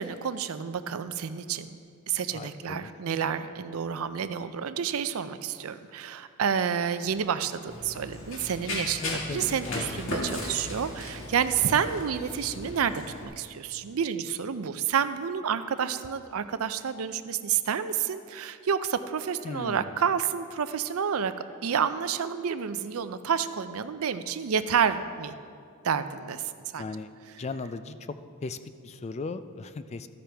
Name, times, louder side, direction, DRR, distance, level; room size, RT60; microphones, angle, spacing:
voice 1, 0.0-1.8 2.1-21.3 21.6-25.3 25.8-26.4 26.7-26.8, right 7 dB, 75° right, 12 dB, 0.5 m, -29 dB
voice 2, 2.3-2.9 9.0-9.4 9.7-9.9 11.6-11.8 19.4-19.9 26.8-27.1 27.4-28.2 28.4-28.6 28.8-30.1, left 3 dB, 30° left, 11 dB, 0.3 m, -37 dB
Run, 7.7-13.2, left 1 dB, 60° left, 1.9 m, -36 dB
13.0 x 10.0 x 3.4 m, 2.3 s
head